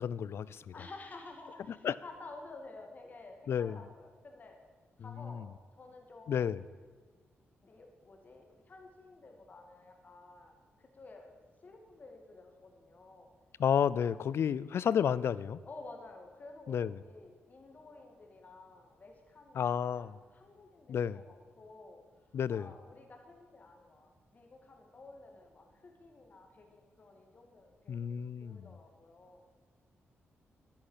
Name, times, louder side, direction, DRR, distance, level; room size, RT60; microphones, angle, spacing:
voice 1, 0.0-0.6 1.8-1.9 3.5-3.8 6.3-6.6 13.6-15.6 16.7-16.9 19.6-20.1 20.9-21.2 22.3-22.7 27.9-28.7, left 8 dB, 65° left, 19 dB, 0.5 m, -31 dB
voice 2, 0.7-4.6 5.0-6.5 7.6-11.3 11.6-13.3 15.6-29.4, left 3 dB, 40° left, 3 dB, 2.2 m, -52 dB
10.5 x 10.5 x 9.9 m, 1.5 s
cardioid pair, 110°, 5 cm